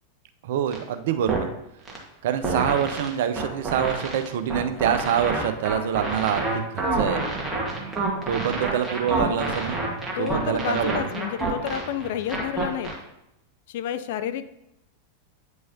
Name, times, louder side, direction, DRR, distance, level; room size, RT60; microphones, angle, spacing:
voice 1, 0.4-1.5 2.2-7.2 8.3-9.8 10.2-11.1, right 9 dB, 55° right, 9 dB, 0.5 m, -26 dB
sound 1, 0.7-0.8 1.3-1.5 1.9-2.0 2.4-13.0, right 2 dB, 10° right, 1.5 m, -28 dB
sound 2, 7.1-12.2, right 5 dB, 25° right, 1.2 m, -42 dB
voice 2, 10.1-12.9 13.7-14.5, left 10 dB, 55° left, 11 dB, 0.4 m, -30 dB
8.6 x 4.7 x 2.7 m, 0.84 s
figure-of-eight pair, 90°, 0 cm